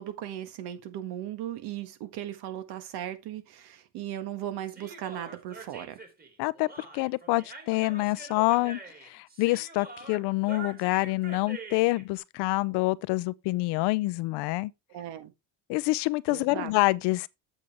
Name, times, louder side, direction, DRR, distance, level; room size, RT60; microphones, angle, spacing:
voice 1, 0.0-6.0 14.9-15.3 16.3-16.7, right 11 dB, 70° right, 1.7 m, -37 dB
Human voice, 4.7-12.0, right 3 dB, 25° right, 2.5 m, -45 dB
voice 2, 6.4-14.7 15.7-17.3, left 21 dB, 80° left, 0.7 m, -27 dB
8.1 x 7.3 x 3.5 m
cardioid pair, 105°, 40 cm